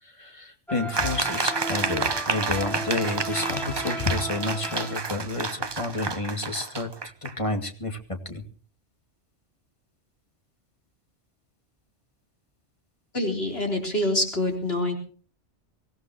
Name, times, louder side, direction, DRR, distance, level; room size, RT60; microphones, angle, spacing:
voice 1, 0.0-6.9 7.2-8.4, left 2 dB, 25° left, 5 dB, 2.4 m, -30 dB
sound 1, 0.7-5.5, right 1 dB, ahead, 1.9 m, -36 dB
sound 2, 0.9-7.3, right 4 dB, 25° right, 0.7 m, -30 dB
voice 2, 13.1-14.9, left 1 dB, 60° left, 2 dB, 4.1 m, -26 dB
24.0 x 17.0 x 3.0 m, 0.39 s
omnidirectional pair, 1.2 m